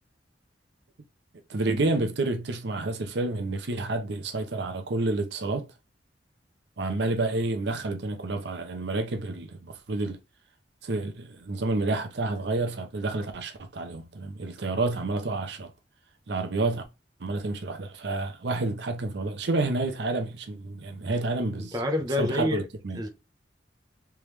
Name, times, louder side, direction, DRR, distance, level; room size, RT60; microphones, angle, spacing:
voice 1, 1.5-5.7 6.8-10.2 10.8-15.7 16.3-16.8 17.2-21.8 22.2-23.0, right 2 dB, 65° right, 0.6 m, -29 dB
voice 2, 21.6-22.6 22.9-23.1, left 1 dB, 20° right, 0.6 m, -27 dB
3.5 x 3.0 x 3.2 m
head